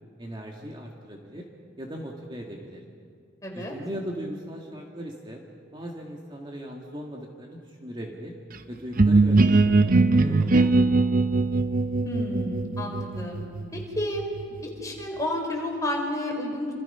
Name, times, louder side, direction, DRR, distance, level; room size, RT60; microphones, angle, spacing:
voice 1, 0.2-1.5 1.8-2.8 3.5-5.4 5.7-8.4 8.7-10.7, equal, 25° right, 0 dB, 2.1 m, -38 dB
voice 2, 3.4-3.7 12.0-13.4 13.7-14.3 14.6-16.7, left 1 dB, 15° left, 0 dB, 4.6 m, -31 dB
sound 1, 9.0-14.6, right 3 dB, 45° right, 0.9 m, -21 dB
28.5 x 27.0 x 5.7 m, 2.2 s
head